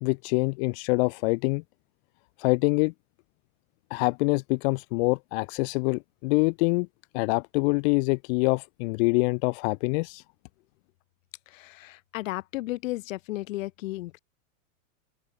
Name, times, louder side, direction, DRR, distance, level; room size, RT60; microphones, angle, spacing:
voice 1, 0.0-1.6 2.4-2.9 3.9-6.9 7.1-10.2, left 29 dB, 50° left, 1.1 m, -25 dB
voice 2, 11.5-14.2, left 17 dB, 70° left, 1.8 m, -34 dB
open air
supercardioid pair, 140°, 41 cm